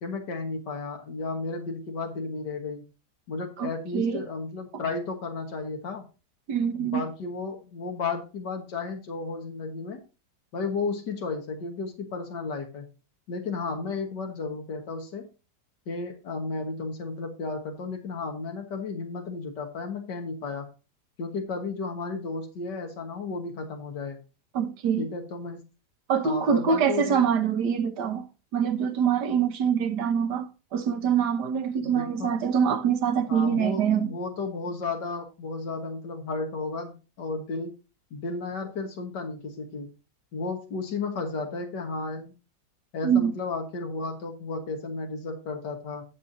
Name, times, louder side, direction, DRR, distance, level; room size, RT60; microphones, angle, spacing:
voice 1, 0.0-2.8 3.3-6.0 6.7-10.0 10.5-12.9 13.3-15.3 15.9-20.7 21.2-24.2 25.0-25.6 26.2-27.2 31.8-32.3 33.3-37.8 38.1-39.9 40.3-42.3 42.9-46.0, left 3 dB, 85° left, 2.1 m, -33 dB
voice 2, 3.6-4.2 6.5-7.0 24.5-25.1 26.1-28.3 28.5-34.1 43.0-43.3, right 7 dB, 75° right, 1.6 m, -25 dB
10.5 x 7.7 x 2.7 m
omnidirectional pair, 1.8 m